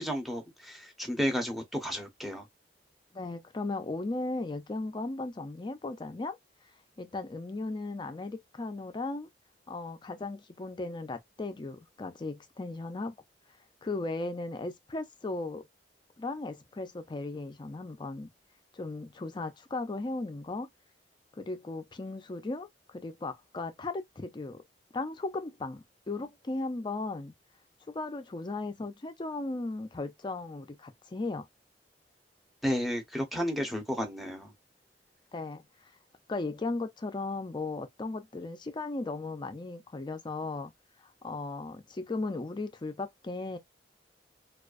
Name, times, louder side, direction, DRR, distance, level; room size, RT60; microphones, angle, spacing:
voice 1, 0.0-2.5 32.6-34.5, equal, ahead, 0.7 m, -32 dB
voice 2, 3.1-6.4 7.0-9.3 9.7-13.2 13.8-15.6 16.2-18.3 18.7-20.7 21.4-24.6 24.9-27.3 27.9-31.5 35.3-35.6 36.3-40.7 41.2-43.6, left 2 dB, 25° left, 0.4 m, -36 dB
2.3 x 2.2 x 2.3 m
head